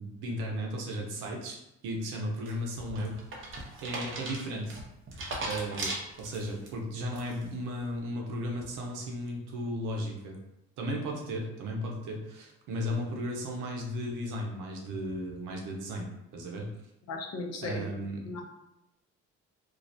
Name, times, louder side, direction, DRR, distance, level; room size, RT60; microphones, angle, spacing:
voice 1, 0.0-1.6 1.8-4.7 5.4-10.4 10.8-16.7 17.6-18.3, equal, 85° right, 0 dB, 0.6 m, -35 dB
sound 1, 2.5-6.7 7.1-7.6, right 2 dB, 45° right, 0.6 m, -38 dB
voice 2, 17.1-17.8 18.3-18.4, left 3 dB, 60° left, 2 dB, 0.6 m, -36 dB
2.4 x 2.0 x 2.6 m, 0.88 s
cardioid pair, 90°, 30 cm